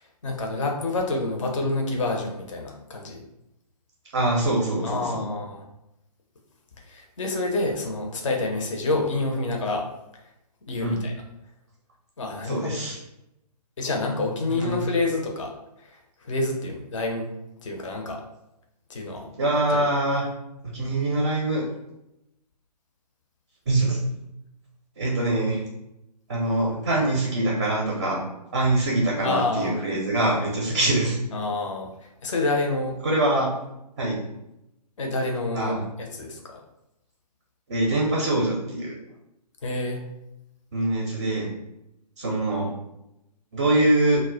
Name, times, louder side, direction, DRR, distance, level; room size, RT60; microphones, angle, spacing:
voice 1, 0.2-3.2 4.8-5.6 6.9-9.9 10.7-11.1 12.2-12.8 13.8-15.5 15.9-16.0 16.2-17.3 17.6-18.2 18.9-19.3 19.7-19.9 29.2-29.8 31.3-31.9 32.2-33.0 35.0-36.6 39.6-40.0, left 2 dB, 50° left, 2 dB, 0.5 m, -28 dB
voice 2, 4.1-5.3 10.8-11.0 12.4-13.0 14.5-14.8 19.4-20.3 20.7-21.6 23.7-24.0 25.0-25.6 26.3-28.2 28.5-31.2 33.0-33.5 34.0-34.2 35.5-35.8 37.7-38.9 40.7-41.5 42.2-42.7 43.5-44.2, right 2 dB, 30° right, -2 dB, 0.4 m, -24 dB
2.1 x 2.1 x 3.6 m, 0.87 s
figure-of-eight pair, 135°, 21 cm